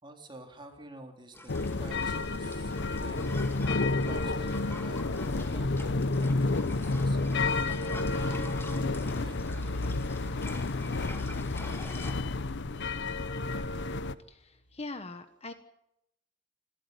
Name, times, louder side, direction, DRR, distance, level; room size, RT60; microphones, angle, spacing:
voice 1, 0.0-3.5 4.1-7.5 7.8-9.5, right 1 dB, 25° right, 3 dB, 3.5 m, -49 dB
sound 1, 1.3-12.1, left 1 dB, 10° left, 2.2 m, -46 dB
sound 2, 1.5-14.2, left 3 dB, 60° left, 0.9 m, -30 dB
voice 2, 14.3-15.5, left 2 dB, 30° left, 9 dB, 1.3 m, -42 dB
27.0 x 13.5 x 9.5 m, 0.81 s
head